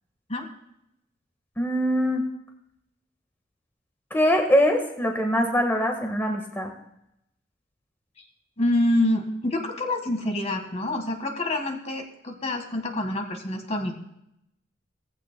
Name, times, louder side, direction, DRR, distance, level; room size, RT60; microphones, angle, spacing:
voice 1, 1.6-2.3 4.1-6.7, equal, 10° left, 1 dB, 1.5 m, -23 dB
voice 2, 8.6-13.9, left 1 dB, 35° left, 4 dB, 1.6 m, -26 dB
18.0 x 15.5 x 2.2 m, 0.80 s
head